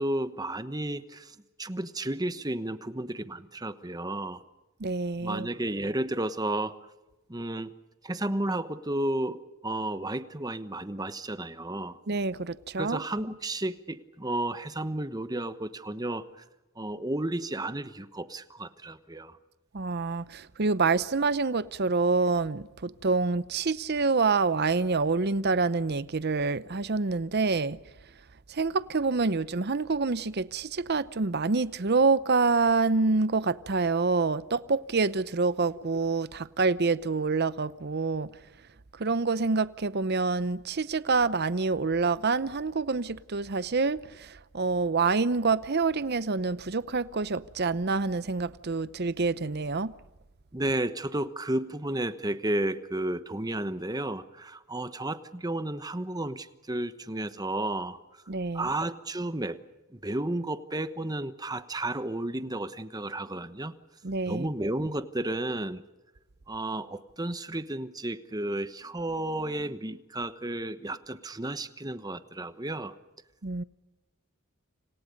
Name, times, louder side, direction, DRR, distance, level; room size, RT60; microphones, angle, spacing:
voice 1, 0.0-4.4 5.2-6.7 7.3-7.7 8.0-12.0 12.8-16.4 16.8-19.4 50.5-58.0 58.5-59.6 59.9-63.7 64.3-65.8 66.5-72.9, right 1 dB, 15° right, 1.1 m, -32 dB
voice 2, 4.8-5.5 12.1-13.0 19.7-27.8 28.5-38.3 38.9-49.9 58.3-58.7 64.0-64.5 73.4-73.6, right 4 dB, 50° right, 0.7 m, -27 dB
30.0 x 27.0 x 5.3 m
head